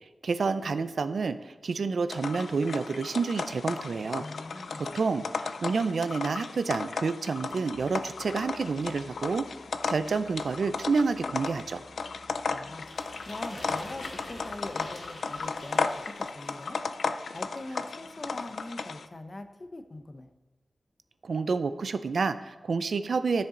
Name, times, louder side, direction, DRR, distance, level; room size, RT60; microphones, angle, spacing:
voice 1, 0.2-4.2 4.8-9.4 9.9-11.8 21.2-23.5, right 4 dB, 70° right, 11 dB, 0.5 m, -29 dB
sound 1, 2.1-19.1, left 4 dB, 85° left, 0.4 m, -35 dB
voice 2, 4.2-5.0 11.8-11.9 12.5-16.8 17.3-20.3, left 2 dB, 30° left, 7 dB, 0.8 m, -42 dB
sound 2, 7.7-14.6, equal, 5° right, 1.0 m, -58 dB
sound 3, 12.8-16.8, left 1 dB, 70° left, 2.2 m, -45 dB
13.5 x 6.8 x 3.9 m, 1.1 s
wide cardioid pair, 130°, 0 cm